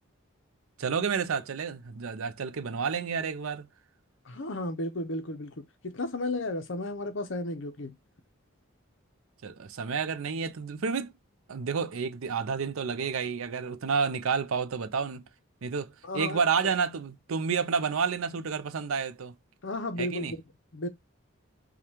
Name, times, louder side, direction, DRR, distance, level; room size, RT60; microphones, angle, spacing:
voice 1, 0.8-3.7 9.4-11.1 11.5-15.2 15.6-19.3 20.0-20.3, right 5 dB, 75° right, 0.5 m, -30 dB
voice 2, 4.3-7.9 16.0-16.4 19.6-20.4 20.7-20.9, left 2 dB, 60° left, 0.8 m, -33 dB
4.9 x 2.4 x 2.8 m
head